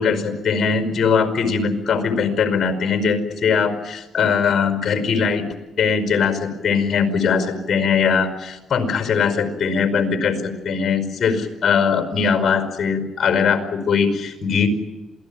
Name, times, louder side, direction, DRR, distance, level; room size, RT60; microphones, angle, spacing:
voice 1, 0.0-5.4 5.8-14.8, left 6 dB, 50° left, 8 dB, 5.2 m, -20 dB
27.5 x 19.0 x 8.9 m, 1.0 s
cardioid pair, 90°, 0 cm